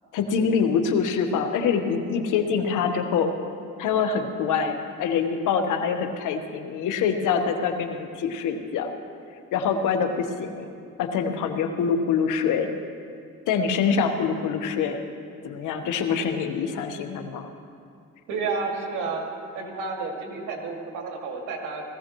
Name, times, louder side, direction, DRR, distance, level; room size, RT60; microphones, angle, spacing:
voice 1, 0.1-3.3 3.8-8.9 9.5-10.7 11.0-12.7 13.5-15.0 15.4-17.5, left 6 dB, 85° left, 6 dB, 1.2 m, -25 dB
voice 2, 18.3-19.3 19.5-21.8, right 4 dB, 85° right, 1 dB, 2.2 m, -31 dB
19.0 x 15.0 x 3.1 m, 2.3 s
cardioid pair, 90°, 30 cm